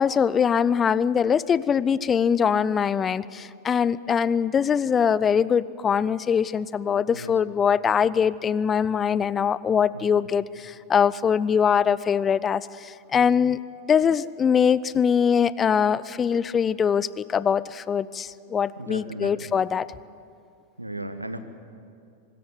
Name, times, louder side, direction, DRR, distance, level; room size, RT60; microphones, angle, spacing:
voice 1, 0.0-13.6 13.9-19.9, left 7 dB, 20° left, 19 dB, 0.5 m, -22 dB
voice 2, 7.1-7.4 9.9-10.2 18.8-19.5 20.8-21.4, right 1 dB, 85° right, 10 dB, 1.3 m, -36 dB
24.0 x 13.5 x 9.4 m, 2.4 s
figure-of-eight pair, 90°, 0 cm